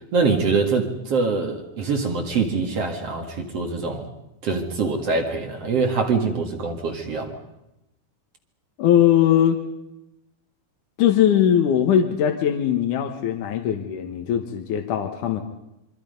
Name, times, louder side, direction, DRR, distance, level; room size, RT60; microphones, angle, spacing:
voice 1, 0.1-4.1 4.4-7.4, right 4 dB, 45° right, 4 dB, 2.6 m, -24 dB
voice 2, 8.8-9.6 11.0-15.4, left 10 dB, 65° left, 3 dB, 2.5 m, -20 dB
26.5 x 24.5 x 5.4 m, 0.89 s
omnidirectional pair, 4.3 m